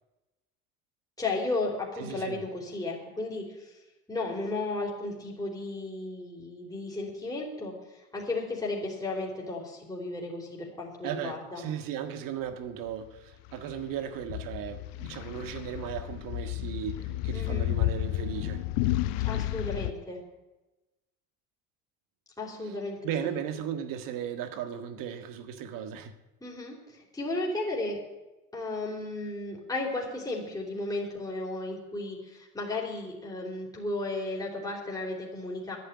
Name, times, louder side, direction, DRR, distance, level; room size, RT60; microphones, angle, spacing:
voice 1, 1.2-3.7 4.1-11.6 17.3-17.7 19.2-20.2 22.4-23.3 26.4-28.0 28.5-35.8, left 2 dB, 10° left, 4.1 m, -34 dB
voice 2, 2.0-2.4 11.0-18.6 22.6-22.8 23.0-26.1, right 9 dB, 60° right, 1.7 m, -36 dB
sound 1, 13.5-19.9, left 15 dB, 70° left, 0.8 m, -31 dB
10.5 x 9.4 x 9.7 m
supercardioid pair, 85°, 37 cm